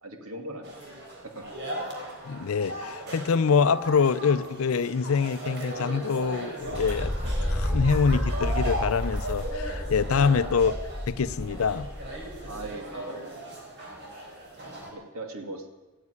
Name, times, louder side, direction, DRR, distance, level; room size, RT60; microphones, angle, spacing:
voice 1, 0.0-0.9 1.2-1.5 12.5-13.3 14.9-15.7, right 2 dB, 75° right, 2.2 m, -40 dB
sound 1, 0.6-14.9, right 1 dB, 55° right, 4.0 m, -37 dB
voice 2, 2.2-10.8 11.1-11.9, left 5 dB, 70° left, 0.5 m, -25 dB
sound 2, 6.6-12.7, equal, 10° right, 2.7 m, -31 dB
15.0 x 9.6 x 9.7 m
head